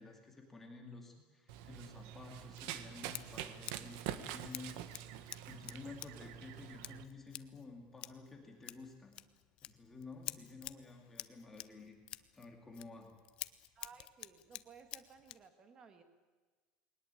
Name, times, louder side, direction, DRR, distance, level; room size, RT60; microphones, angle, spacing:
voice 1, 0.0-4.8 5.2-9.1 9.6-12.0 12.3-13.1, left 3 dB, 10° left, 1 dB, 2.6 m, -52 dB
Run, 1.5-7.0, right 11 dB, 65° right, 1.4 m, -46 dB
Scissors, 2.5-15.5, left 14 dB, 40° left, 0.6 m, -51 dB
voice 2, 13.8-16.0, right 6 dB, 25° right, 8 dB, 1.8 m, -58 dB
21.0 x 19.5 x 8.5 m, 1.3 s
cardioid pair, 170°, 3 cm